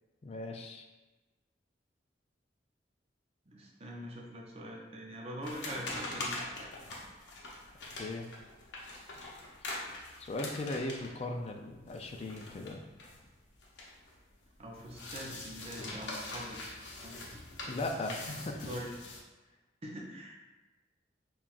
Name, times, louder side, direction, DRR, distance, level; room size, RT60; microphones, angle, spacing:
voice 1, 0.2-0.9 8.0-8.2 10.2-12.8 17.7-18.7, left 2 dB, 35° left, 3 dB, 0.3 m, -38 dB
voice 2, 3.5-6.7 14.6-17.1 18.2-18.3 18.7-19.0 19.8-20.4, equal, 35° right, -1 dB, 0.5 m, -44 dB
sound 1, 5.4-14.2 14.4-19.2, left 2 dB, 75° left, 0.7 m, -43 dB
5.5 x 2.3 x 2.5 m, 1.1 s
head